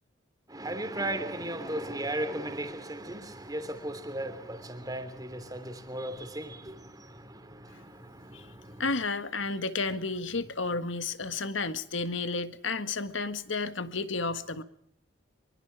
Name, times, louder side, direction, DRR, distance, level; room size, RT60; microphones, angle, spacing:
voice 1, 0.5-8.8, right 1 dB, 20° right, 3.2 m, -36 dB
voice 2, 8.8-14.6, left 3 dB, 80° left, 1.7 m, -32 dB
25.5 x 24.5 x 4.8 m
head